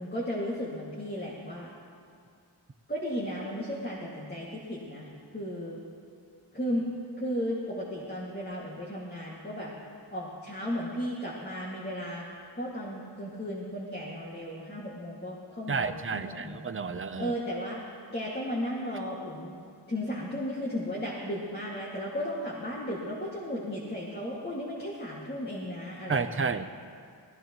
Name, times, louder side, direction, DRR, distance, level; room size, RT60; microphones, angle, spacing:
voice 1, 0.0-1.7 2.9-5.8 6.5-6.8 7.2-9.7 10.1-12.2 12.6-16.6 17.2-17.8 18.1-19.6 19.9-26.5, equal, 20° left, -5 dB, 2.1 m, -35 dB
voice 2, 15.7-17.3 26.1-26.7, right 5 dB, 30° right, 10 dB, 0.6 m, -31 dB
18.5 x 16.5 x 3.1 m, 2.3 s
wide cardioid pair, 40°, 43 cm